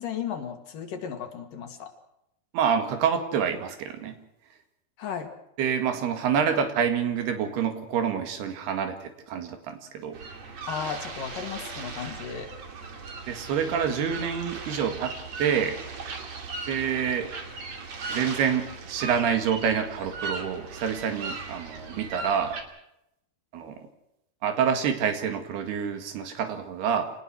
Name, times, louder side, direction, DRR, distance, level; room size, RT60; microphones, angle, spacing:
voice 1, 0.0-1.9 5.0-5.3 10.7-12.5, left 7 dB, 60° left, 5 dB, 3.7 m, -35 dB
voice 2, 2.5-4.2 5.6-10.2 13.3-15.8 16.7-17.3 18.1-22.6 23.5-23.8 24.4-27.1, right 7 dB, 90° right, 7 dB, 4.1 m, -27 dB
sound 1, 10.1-22.6, right 4 dB, 45° right, 3.7 m, -38 dB
27.0 x 19.5 x 6.3 m, 0.81 s
omnidirectional pair, 4.4 m